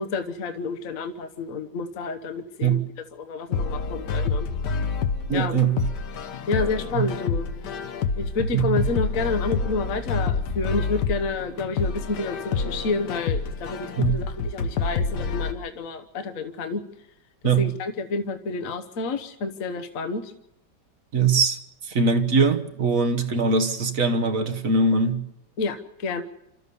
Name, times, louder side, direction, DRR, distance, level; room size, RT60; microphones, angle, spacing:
voice 1, 0.0-2.8 3.2-4.5 5.3-5.6 6.5-7.5 8.2-16.8 17.6-20.2 25.6-26.2, left 3 dB, 50° left, 1.5 m, -29 dB
sound 1, 3.5-15.5, left 5 dB, 75° left, 1.7 m, -28 dB
voice 2, 5.3-5.9 6.9-7.1 8.5-8.8 14.0-14.2 17.4-17.7 21.1-21.6 21.8-25.2, right 4 dB, 50° right, 1.6 m, -22 dB
29.0 x 13.5 x 6.9 m
omnidirectional pair, 1.9 m